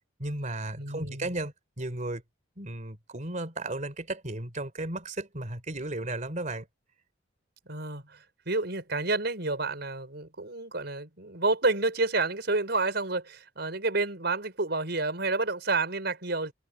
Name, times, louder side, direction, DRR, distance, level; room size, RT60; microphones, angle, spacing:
voice 1, 0.2-2.2 2.6-6.7, right 2 dB, 40° right, 3.6 m, -34 dB
voice 2, 0.8-1.3 7.7-16.5, right 3 dB, 60° right, 5.2 m, -29 dB
head